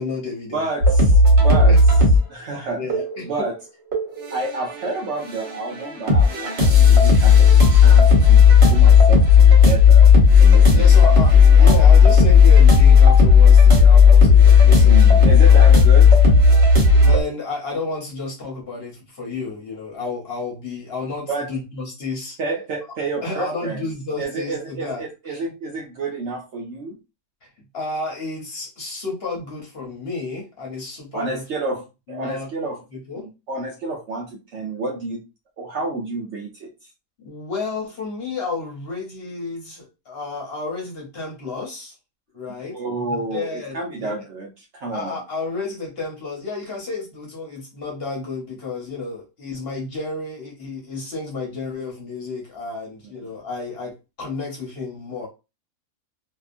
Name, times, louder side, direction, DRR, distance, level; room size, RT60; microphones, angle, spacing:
voice 1, 0.0-0.7 1.6-1.8 2.7-3.5 10.7-15.8 17.0-22.4 23.2-25.4 27.7-31.4 32.1-32.5 32.9-33.2 37.2-41.9 42.3-44.2 44.9-55.3, left 3 dB, 50° left, 1.0 m, -31 dB
voice 2, 0.5-1.8 2.3-2.8 3.3-3.6 4.3-9.2 9.6-10.8 11.6-11.9 14.7-16.2 21.3-21.5 22.4-23.9 24.2-27.0 31.1-32.8 33.1-35.2 35.6-36.7 42.7-45.2, right 3 dB, 65° right, 0.8 m, -29 dB
sound 1, 0.8-2.2 2.9-3.2 3.9-4.9 5.2-17.2, left 5 dB, 50° right, 1.1 m, -12 dB
2.7 x 2.3 x 2.4 m
omnidirectional pair, 1.5 m